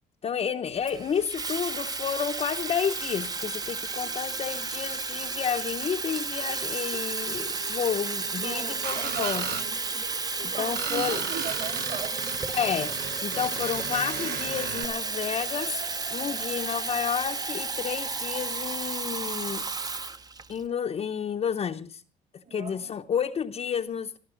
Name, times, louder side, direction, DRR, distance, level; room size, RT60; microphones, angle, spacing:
voice 1, 0.2-9.5 10.4-11.3 12.5-12.9 13.2-15.8 16.1-19.7 20.5-22.0 22.3-24.2, left 7 dB, 35° left, 0.7 m, -31 dB
Water tap faucet / Fill (with liquid), 0.9-20.6, right 4 dB, 20° right, 0.8 m, -32 dB
voice 2, 8.3-12.3 22.4-22.9, right 6 dB, 55° right, 5.2 m, -39 dB
Screech, 8.8-9.7 10.8-14.8, right 8 dB, 75° right, 1.3 m, -35 dB
24.5 x 13.5 x 3.8 m
cardioid pair, 110°, 17 cm